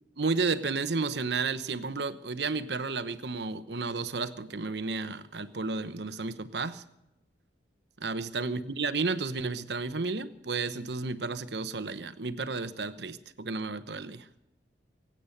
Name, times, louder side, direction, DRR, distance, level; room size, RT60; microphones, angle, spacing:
voice 1, 0.2-6.8 8.0-14.3, right 4 dB, 70° right, 1.0 m, -32 dB
22.5 x 8.9 x 6.6 m
head